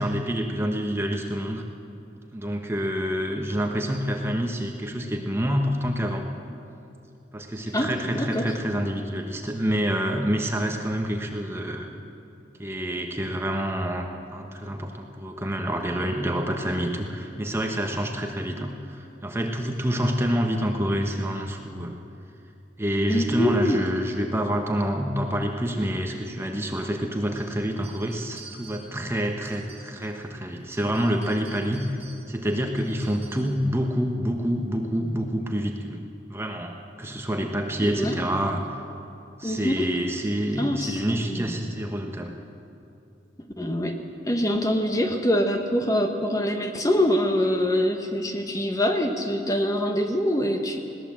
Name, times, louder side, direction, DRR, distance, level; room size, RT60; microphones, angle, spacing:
voice 1, 0.0-1.7 2.3-6.3 7.3-11.9 12.6-21.9 22.8-32.0 32.3-36.0 36.3-38.6 39.4-42.3, equal, 15° right, 3 dB, 1.2 m, -27 dB
voice 2, 7.7-8.5 23.1-23.8 37.8-38.1 39.4-39.9 40.6-41.6 43.6-44.0 44.3-50.8, equal, 20° left, 4 dB, 1.3 m, -24 dB
sound 1, 27.3-30.2 30.6-33.6, right 5 dB, 35° right, 6.3 m, -49 dB
20.5 x 17.5 x 7.6 m, 2.7 s
head